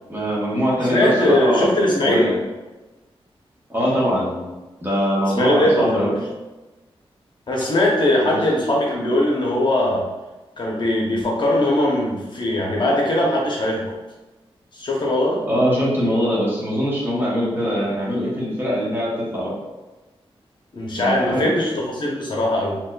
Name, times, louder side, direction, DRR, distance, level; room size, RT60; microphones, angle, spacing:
voice 1, 0.1-1.7 2.0-2.4 3.7-4.5 4.8-6.1 8.2-8.4 15.5-19.5 21.0-21.5, equal, 20° right, -6 dB, 1.2 m, -22 dB
voice 2, 0.9-2.3 5.4-6.2 7.5-10.1 10.6-13.9 14.7-15.4 20.7-22.8, left 1 dB, 50° left, -2 dB, 0.8 m, -20 dB
4.1 x 2.8 x 2.3 m, 1.1 s
wide cardioid pair, 110°, 10 cm